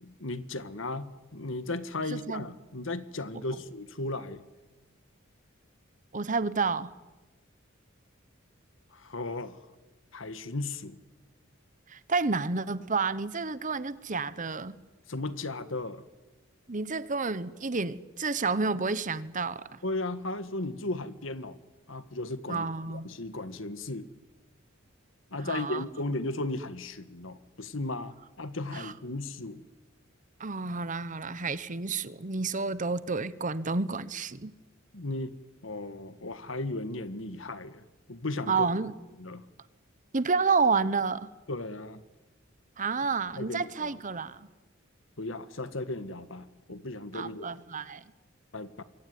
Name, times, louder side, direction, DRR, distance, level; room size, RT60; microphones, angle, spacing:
voice 1, 0.0-4.4 8.9-9.6 10.1-11.0 15.1-16.0 19.8-21.6 21.9-24.1 25.3-29.6 34.9-35.3 35.6-37.8 38.1-38.7 39.2-39.4 41.5-42.0 43.4-43.9 45.2-47.5 48.5-48.8, left 2 dB, 70° left, 1.7 m, -36 dB
voice 2, 2.1-2.5 6.1-6.9 11.9-14.7 16.7-19.8 22.5-23.1 25.4-25.8 28.7-28.9 30.4-34.5 38.5-38.9 40.1-41.3 42.8-44.5 47.1-48.0, right 4 dB, 40° right, 1.1 m, -30 dB
26.5 x 23.0 x 9.5 m
head